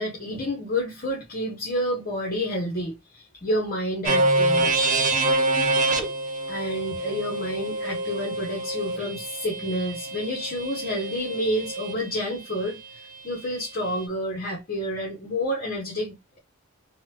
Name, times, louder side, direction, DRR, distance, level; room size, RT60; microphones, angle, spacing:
voice 1, 0.0-4.8 6.5-16.4, equal, 45° left, 0.9 m, -29 dB
sound 1, 4.0-11.9, right 2 dB, 35° right, 0.5 m, -26 dB
3.8 x 2.2 x 2.8 m
head